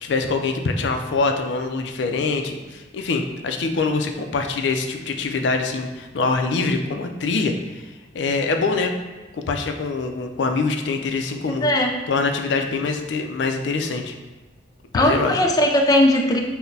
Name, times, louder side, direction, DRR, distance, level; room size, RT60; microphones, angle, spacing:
voice 1, 0.0-7.9 8.1-8.9 9.3-11.7 12.1-14.2 14.9-15.4, left 4 dB, 85° left, 5 dB, 0.4 m, -24 dB
voice 2, 11.6-11.9 14.9-16.4, left 1 dB, 20° left, 2 dB, 0.3 m, -18 dB
5.8 x 2.1 x 2.7 m, 1.2 s
head